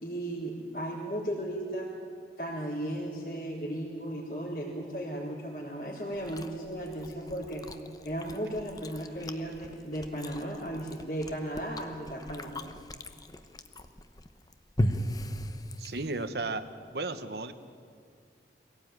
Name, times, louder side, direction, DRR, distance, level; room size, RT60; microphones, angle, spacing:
voice 1, 0.0-1.9 2.4-7.6 8.0-12.6, right 1 dB, 55° left, -7 dB, 4.1 m, -35 dB
Chewing mastication, 6.1-16.3, equal, 20° left, 0.9 m, -38 dB
voice 2, 15.8-16.6 16.9-17.5, right 3 dB, 70° right, 9 dB, 1.2 m, -34 dB
23.5 x 17.5 x 9.3 m, 2.3 s
head